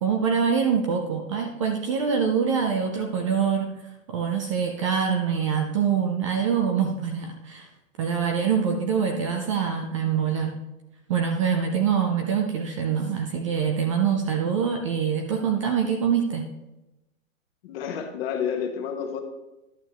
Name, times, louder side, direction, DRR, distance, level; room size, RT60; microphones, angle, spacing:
voice 1, 0.0-3.7 4.1-7.7 8.0-10.6 11.1-16.5, right 7 dB, 25° right, 3 dB, 0.4 m, -24 dB
voice 2, 17.6-19.2, left 7 dB, 45° left, 4 dB, 1.4 m, -30 dB
11.0 x 6.9 x 3.0 m, 0.97 s
hypercardioid pair, 150°, 41 cm